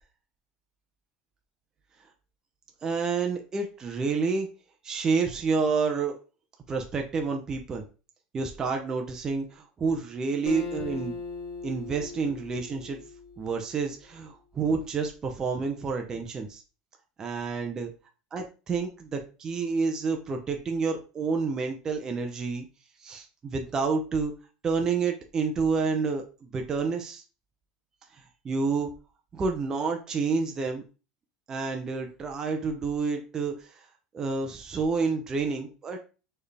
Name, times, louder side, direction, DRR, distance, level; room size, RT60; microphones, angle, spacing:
voice 1, 2.8-4.5 4.8-6.2 6.7-7.8 8.3-11.2 11.6-13.0 13.4-16.6 17.2-17.9 18.3-22.6 23.0-24.3 24.6-27.2 28.1-28.9 29.3-30.8 31.5-33.9 34.1-36.0, right 4 dB, 25° right, 3 dB, 0.6 m, -29 dB
Acoustic guitar, 10.5-13.9, left 4 dB, 55° left, 1.5 m, -39 dB
4.4 x 3.3 x 3.3 m, 0.33 s
supercardioid pair, 140°, 3 cm